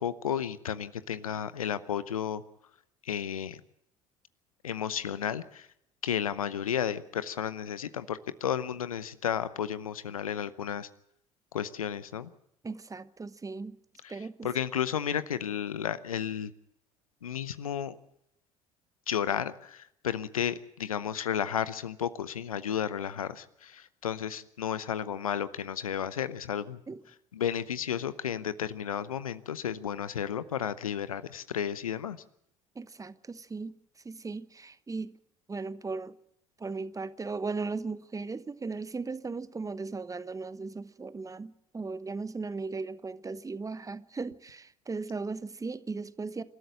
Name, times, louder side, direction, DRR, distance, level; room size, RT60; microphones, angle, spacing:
voice 1, 0.0-2.4 3.0-3.6 4.6-5.7 6.0-10.9 11.5-12.3 14.4-16.5 17.2-18.0 19.1-26.8 27.3-32.2, left 9 dB, 80° left, 0.8 m, -33 dB
voice 2, 12.6-13.8 14.1-14.5 26.9-27.0 32.7-33.7 34.0-35.1 35.5-36.2 36.6-46.4, right 4 dB, 20° right, 1.1 m, -37 dB
27.5 x 13.0 x 7.6 m
figure-of-eight pair, 60°, 18 cm